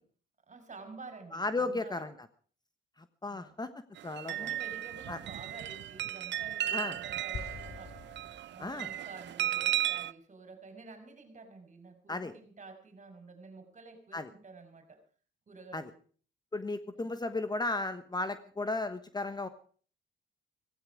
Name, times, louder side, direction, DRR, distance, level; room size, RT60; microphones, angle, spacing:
voice 1, 0.5-2.0 3.2-3.5 4.3-8.0 8.5-15.0 15.5-16.0 16.9-17.1, right 3 dB, 35° right, 8 dB, 5.1 m, -50 dB
voice 2, 1.3-2.1 3.0-3.7 4.0-4.5 5.1-5.2 6.7-7.0 8.6-8.9 12.1-12.3 14.1-14.3 15.7-15.9 16.5-19.5, left 2 dB, 20° left, 11 dB, 1.2 m, -35 dB
sound 1, 4.0-10.1, right 13 dB, 60° right, 0.7 m, -35 dB
sound 2, 7.3-9.0, left 5 dB, 50° left, 1.6 m, -45 dB
16.5 x 16.0 x 5.0 m, 0.43 s
cardioid pair, 95°, 20 cm